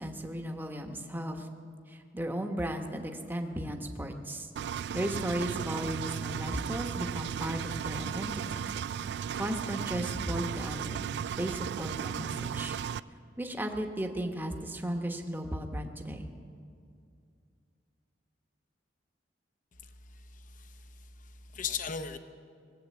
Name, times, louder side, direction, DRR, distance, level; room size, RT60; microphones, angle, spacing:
voice 1, 0.0-1.5 1.9-4.5 4.9-8.7 9.4-11.1 11.3-12.8 13.4-16.3, equal, 10° right, 4 dB, 1.0 m, -35 dB
Engine, 4.6-13.0, right 8 dB, 65° right, 0.3 m, -35 dB
voice 2, 20.3-20.8 21.2-22.2, left 6 dB, 45° left, 9 dB, 0.7 m, -37 dB
19.5 x 7.9 x 8.5 m, 2.3 s
head